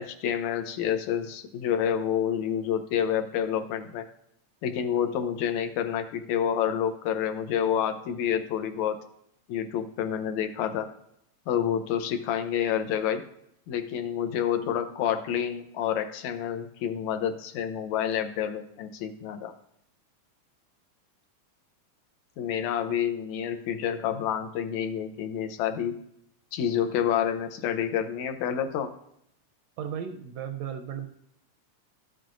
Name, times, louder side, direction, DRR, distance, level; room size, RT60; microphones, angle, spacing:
voice 1, 0.0-4.1 4.6-9.0 9.5-10.9 11.5-13.2 13.7-19.5 22.4-26.0 26.5-28.9, left 9 dB, 80° left, 8 dB, 2.0 m, -28 dB
voice 2, 29.8-31.1, right 8 dB, 80° right, 7 dB, 1.6 m, -35 dB
12.0 x 7.7 x 2.5 m, 0.76 s
omnidirectional pair, 3.3 m